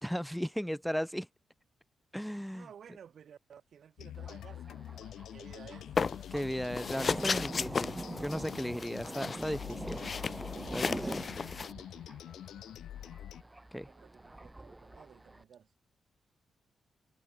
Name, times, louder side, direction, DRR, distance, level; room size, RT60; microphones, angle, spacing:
voice 1, 0.0-1.3 2.1-2.7 6.3-10.0 10.7-11.2 13.7-13.9, equal, ahead, 0.4 m, -36 dB
voice 2, 2.5-5.9 13.8-15.7, right 8 dB, 70° right, 2.9 m, -55 dB
sound 1, 4.0-13.4, left 11 dB, 80° left, 1.3 m, -46 dB
Thunder, 4.2-15.4, right 2 dB, 20° right, 1.9 m, -45 dB
sound 2, 6.0-6.4 6.7-11.7, left 5 dB, 50° left, 0.7 m, -35 dB
supercardioid pair, 50°, 0 cm